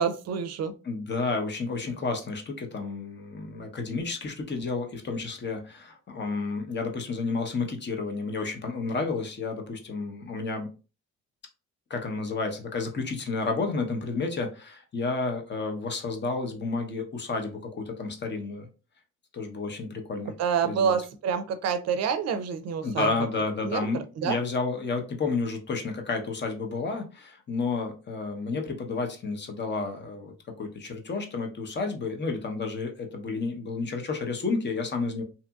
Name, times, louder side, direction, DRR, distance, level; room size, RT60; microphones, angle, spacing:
voice 1, 0.0-0.7 20.4-23.1 23.6-24.4, right 7 dB, 60° right, 10 dB, 0.5 m, -27 dB
voice 2, 0.8-10.7 11.9-18.7 19.3-20.3 20.6-21.0 22.8-35.2, left 4 dB, 35° left, 4 dB, 0.8 m, -31 dB
2.8 x 2.6 x 2.3 m, 0.33 s
cardioid pair, 90°, 30 cm